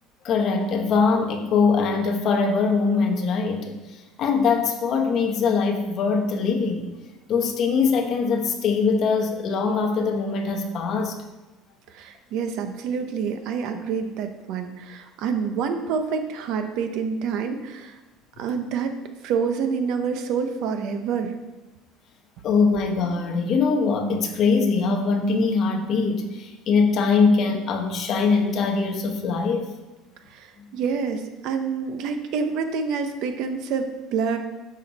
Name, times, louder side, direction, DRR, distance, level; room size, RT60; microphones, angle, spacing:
voice 1, 0.2-6.9 7.3-11.2 22.4-29.7 30.6-30.8, left 4 dB, 35° left, 4 dB, 1.0 m, -22 dB
voice 2, 11.9-18.0 18.4-19.0 19.2-21.4 30.3-34.4, right 6 dB, 50° right, 7 dB, 0.9 m, -27 dB
10.0 x 7.2 x 4.2 m, 1.1 s
cardioid pair, 180°, 0 cm